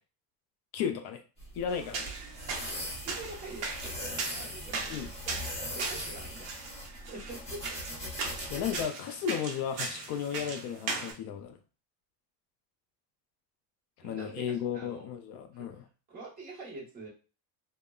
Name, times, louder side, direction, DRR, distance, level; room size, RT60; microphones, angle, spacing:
voice 1, 0.7-1.2 1.5-2.1 4.9-5.1 8.5-11.6 14.0-15.8, left 8 dB, 65° left, 7 dB, 0.5 m, -34 dB
sound 1, 1.4-8.8, equal, 15° left, 0.8 m, -40 dB
sound 2, 1.7-11.1, right 4 dB, 40° right, 0.7 m, -39 dB
voice 2, 2.6-6.5 6.7-7.6 14.0-15.1 15.5-15.8 16.1-17.1, right 3 dB, 20° right, -5 dB, 1.1 m, -46 dB
3.6 x 2.1 x 2.3 m, 0.33 s
cardioid pair, 175°, 39 cm